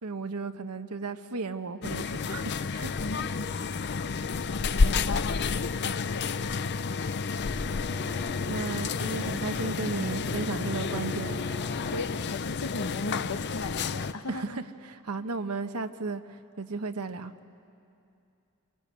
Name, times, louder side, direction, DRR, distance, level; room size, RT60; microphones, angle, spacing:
voice 1, 0.0-2.9 8.5-11.4 14.3-17.3, right 3 dB, 90° right, 8 dB, 1.0 m, -34 dB
sound 1, 1.8-14.1, left 4 dB, 50° left, 0.5 m, -30 dB
voice 2, 3.0-3.6 4.5-5.3 11.9-14.6, left 3 dB, 75° left, 8 dB, 1.2 m, -37 dB
Bowed string instrument, 7.3-12.7, left 1 dB, ahead, 2.9 m, -43 dB
26.0 x 24.0 x 8.8 m, 2.6 s
head